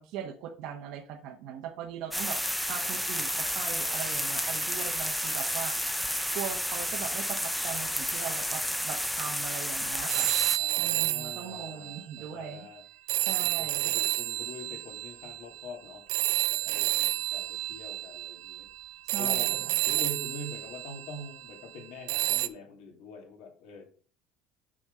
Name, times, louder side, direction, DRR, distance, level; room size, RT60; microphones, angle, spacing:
voice 1, 0.0-2.4 2.7-5.7 6.3-10.3 10.8-12.7 13.2-13.9 16.6-16.7 19.1-19.8, right 9 dB, 60° right, 2 dB, 1.1 m, -40 dB
sound 1, 2.1-10.6, equal, ahead, 0.5 m, -31 dB
sound 2, 10.1-12.6 13.1-21.6 22.1-22.5, right 18 dB, 80° right, 0.6 m, -30 dB
voice 2, 10.6-12.8 13.6-16.0 16.3-18.7 19.2-23.8, left 3 dB, 70° left, 3 dB, 2.7 m, -44 dB
6.3 x 6.3 x 5.4 m, 0.42 s
cardioid pair, 175°, 0 cm